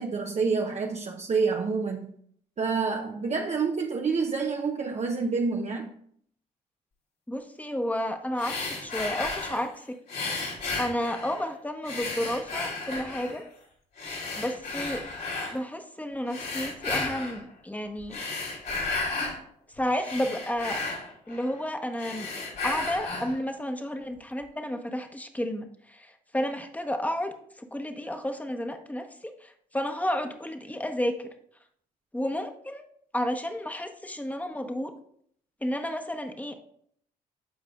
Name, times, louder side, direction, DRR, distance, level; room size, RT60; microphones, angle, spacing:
voice 1, 0.0-2.1 2.6-5.9, right 4 dB, 40° right, 2 dB, 0.7 m, -28 dB
voice 2, 7.3-10.0 10.8-13.4 14.4-15.0 15.5-18.2 19.8-20.8 21.3-22.3 22.6-27.3 27.6-31.2 32.1-32.8 33.1-34.9 35.6-36.5, equal, 10° left, 6 dB, 1.1 m, -31 dB
sound 1, 8.4-9.7 10.1-11.5 11.8-13.4 14.0-15.6 16.3-17.4 18.0-19.4 19.8-21.6 21.9-23.4, left 3 dB, 65° left, 3.1 m, -33 dB
13.5 x 4.7 x 2.4 m, 0.66 s
hypercardioid pair, 55°, 18 cm